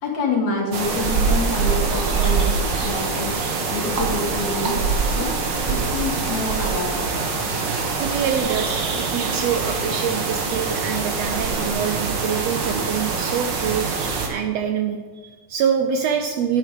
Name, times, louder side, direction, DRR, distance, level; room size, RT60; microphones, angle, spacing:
voice 1, 0.0-3.4 3.7-7.0, left 3 dB, 70° left, -2 dB, 3.6 m, -27 dB
sound 1, 0.7-14.3, right 4 dB, 50° right, 1.4 m, -24 dB
voice 2, 8.0-16.6, right 7 dB, 75° right, 6 dB, 1.6 m, -25 dB
10.0 x 8.5 x 5.2 m, 1.4 s
omnidirectional pair, 3.5 m